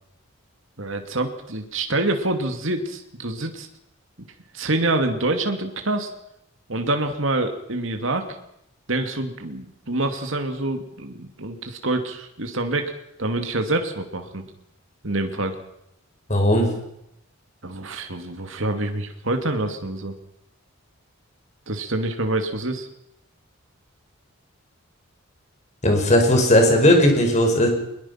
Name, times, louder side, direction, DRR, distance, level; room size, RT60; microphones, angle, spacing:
voice 1, 0.8-3.7 4.5-6.1 6.7-8.4 8.9-12.9 13.2-14.5 15.0-15.6 17.6-20.1 21.7-22.9, right 2 dB, 60° right, 6 dB, 2.5 m, -26 dB
voice 2, 16.3-16.7 25.8-27.7, left 1 dB, 30° left, 3 dB, 5.7 m, -17 dB
23.0 x 21.0 x 5.9 m, 0.79 s
head